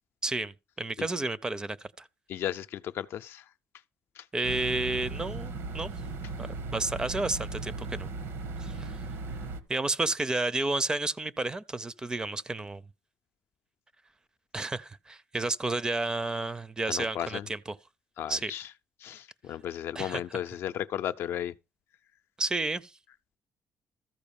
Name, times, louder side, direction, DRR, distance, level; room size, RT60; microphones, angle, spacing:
voice 1, 0.2-2.1 4.3-5.9 6.4-8.1 8.6-9.0 9.7-12.8 14.5-17.8 18.3-18.5 19.9-20.2 22.4-22.9, right 2 dB, 20° right, 0.5 m, -31 dB
voice 2, 2.3-3.4 4.2-4.3 16.9-17.5 18.2-18.7 19.0-21.5, left 10 dB, 70° left, 0.5 m, -35 dB
sound 1, 4.4-9.6, right 3 dB, 80° right, 1.3 m, -37 dB
14.0 x 4.8 x 7.0 m
cardioid pair, 130°, 4 cm